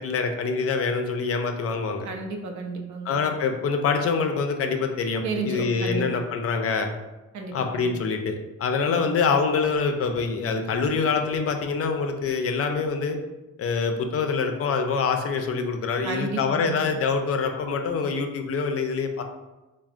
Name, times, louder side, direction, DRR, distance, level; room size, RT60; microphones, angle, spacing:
voice 1, 0.0-2.1 3.0-6.9 7.5-13.2 13.6-19.2, left 5 dB, 50° left, 5 dB, 0.4 m, -25 dB
voice 2, 2.0-3.2 5.2-6.0 7.3-7.9 8.9-9.0 16.0-16.8, right 3 dB, 75° right, 3 dB, 0.6 m, -32 dB
3.3 x 2.0 x 2.4 m, 1.1 s
cardioid pair, 90°, 30 cm